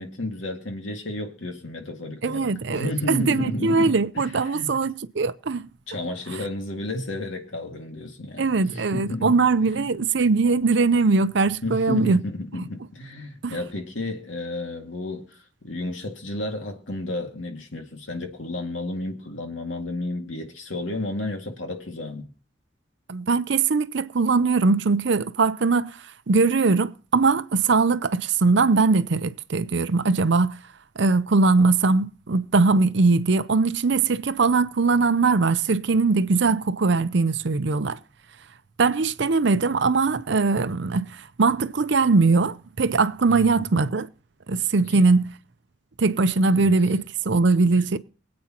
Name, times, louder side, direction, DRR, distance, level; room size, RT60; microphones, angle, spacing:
voice 1, 0.0-4.7 5.9-9.8 11.6-22.3 43.3-43.7 44.8-45.1 46.5-46.7 47.7-47.9, left 1 dB, 80° left, 2.1 m, -32 dB
voice 2, 2.2-5.6 6.3-6.4 8.4-12.2 13.4-13.6 23.1-26.0 26.3-30.6 31.0-38.0 38.8-44.1 44.5-45.3 46.0-48.0, right 4 dB, 65° right, 0.6 m, -21 dB
23.0 x 8.7 x 2.9 m
head